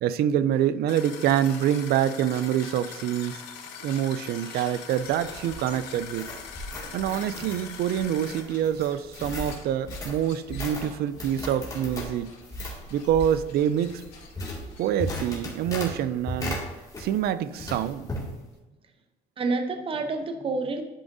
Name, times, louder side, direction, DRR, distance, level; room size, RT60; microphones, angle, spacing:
voice 1, 0.0-3.5 3.8-6.3 6.9-12.3 12.9-14.0 14.8-16.6 17.0-18.1, right 10 dB, 70° right, 14 dB, 0.4 m, -26 dB
sound 1, 0.9-8.4, left 7 dB, 85° left, 0.9 m, -42 dB
sound 2, 1.1-15.6, left 4 dB, 70° left, 2.5 m, -50 dB
voice 2, 4.4-4.8 19.4-20.8, right 3 dB, 35° right, 7 dB, 0.7 m, -29 dB
sound 3, 4.9-17.3 17.6-18.3, left 1 dB, 20° left, 2.2 m, -37 dB
11.0 x 4.9 x 2.6 m, 1.1 s
cardioid pair, 110°, 17 cm